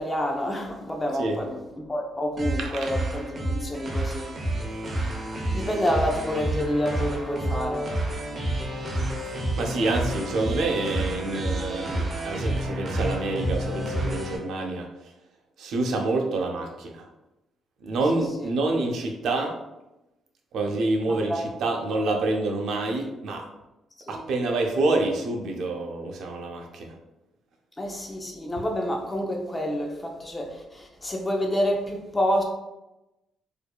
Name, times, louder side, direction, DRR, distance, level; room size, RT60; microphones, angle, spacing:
voice 1, 0.0-4.3 5.5-7.9 18.4-18.5 21.1-21.5 24.1-24.3 27.8-32.4, equal, 20° left, 1 dB, 0.7 m, -28 dB
sound 1, 2.4-14.4, right 1 dB, 35° right, 0.8 m, -29 dB
voice 2, 2.6-2.9 9.2-14.9 15.6-17.1 17.8-19.5 20.5-23.5 24.1-27.0, right 2 dB, 75° right, 2 dB, 0.6 m, -27 dB
4.5 x 2.7 x 2.3 m, 0.96 s
cardioid pair, 90°, 0 cm